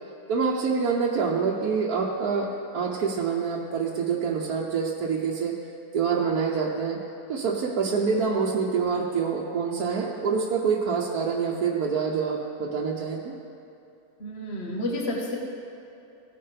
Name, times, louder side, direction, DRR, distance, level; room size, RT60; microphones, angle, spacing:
voice 1, 0.3-5.5 5.9-7.0 7.3-13.3, right 5 dB, 80° right, -3 dB, 1.4 m, -26 dB
voice 2, 14.2-15.4, left 1 dB, 45° left, -2 dB, 1.7 m, -30 dB
17.5 x 10.0 x 3.4 m, 2.7 s
omnidirectional pair, 1.6 m